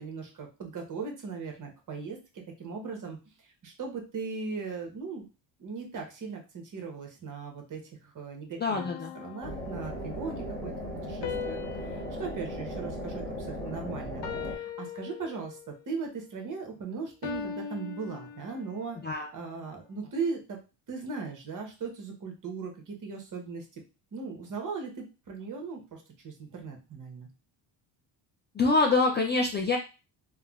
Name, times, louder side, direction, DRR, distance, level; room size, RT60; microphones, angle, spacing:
voice 1, 0.0-2.2 2.6-3.2 3.6-5.3 5.6-8.9 9.1-10.7 11.1-19.0 19.3-20.6 20.9-23.7 24.1-27.3, right 5 dB, 40° right, 2 dB, 1.0 m, -38 dB
voice 2, 8.6-9.1 19.0-19.3 28.5-29.8, left 3 dB, 25° left, 1 dB, 0.3 m, -25 dB
sound 1, 8.7-10.2 11.2-13.7 14.2-15.8 17.2-18.9, left 7 dB, 65° left, 0.7 m, -40 dB
sound 2, 9.4-14.6, equal, 5° left, 1.4 m, -37 dB
3.5 x 2.1 x 2.3 m, 0.30 s
cardioid pair, 95°, 48 cm